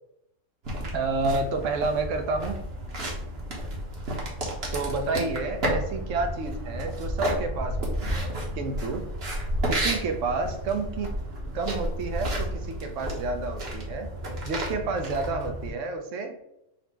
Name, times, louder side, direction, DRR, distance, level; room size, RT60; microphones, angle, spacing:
sound 1, 0.6-15.7, right 1 dB, 55° right, 1.2 m, -31 dB
voice 1, 0.9-2.6 4.7-9.0 9.7-11.1 11.5-14.1 14.4-16.4, right 3 dB, 75° right, 6 dB, 1.0 m, -30 dB
4.1 x 2.1 x 4.4 m, 0.82 s
omnidirectional pair, 1.3 m